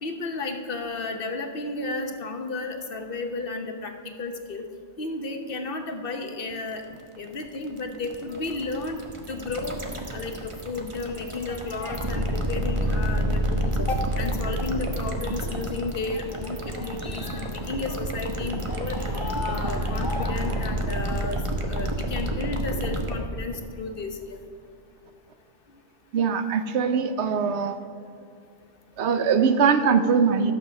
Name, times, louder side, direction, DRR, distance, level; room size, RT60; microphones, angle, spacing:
voice 1, 0.0-4.6 5.0-6.8 7.2-9.0 9.3-9.8 10.1-19.0 19.4-21.4 21.7-24.4, left 3 dB, 55° left, 5 dB, 1.1 m, -33 dB
sound 1, 6.5-23.2, right 1 dB, 30° right, 1.0 m, -29 dB
sound 2, 8.3-21.4, left 2 dB, 20° left, 0.9 m, -42 dB
voice 2, 26.1-27.8 29.0-30.5, right 6 dB, 70° right, 9 dB, 1.0 m, -22 dB
12.5 x 7.0 x 5.8 m, 2.5 s
omnidirectional pair, 1.2 m